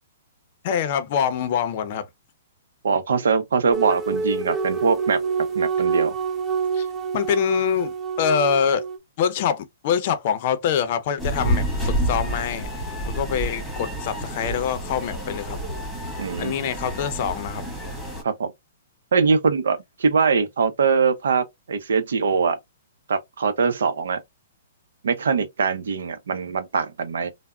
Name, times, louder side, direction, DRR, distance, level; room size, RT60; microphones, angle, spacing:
voice 1, 0.6-2.0 6.7-6.9 7.1-8.9 9.2-12.7 13.0-15.6 16.4-17.6, left 8 dB, 50° left, 0.5 m, -24 dB
voice 2, 2.8-5.2 5.5-6.1 16.2-16.5 18.2-18.5 19.1-22.6 23.1-24.2 25.0-27.3, right 5 dB, 75° right, 0.6 m, -22 dB
sound 1, 3.7-9.0, right 5 dB, 20° right, 0.4 m, -26 dB
sound 2, 11.2-18.2, right 1 dB, 5° left, 1.3 m, -29 dB
3.3 x 2.0 x 2.3 m
hypercardioid pair, 135°, 0 cm